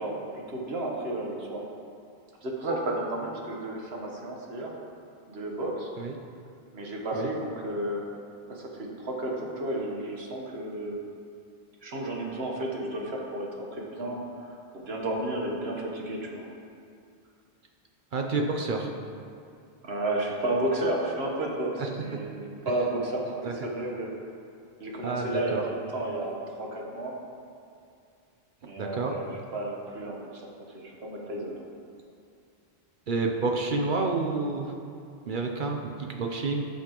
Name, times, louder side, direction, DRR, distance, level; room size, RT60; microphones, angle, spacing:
voice 1, 0.0-1.6 2.4-4.7 5.3-5.9 6.7-8.0 8.5-11.0 11.8-16.5 19.8-24.1 24.8-27.1 28.6-29.3 29.5-30.5 30.7-31.6, right 1 dB, 75° right, -1 dB, 1.4 m, -32 dB
voice 2, 18.1-18.9 21.8-22.2 23.4-23.5 25.0-25.6 28.8-29.1 33.1-34.7 35.3-36.7, right 3 dB, 55° right, 2 dB, 0.8 m, -29 dB
14.0 x 5.8 x 3.0 m, 2.4 s
omnidirectional pair, 1.1 m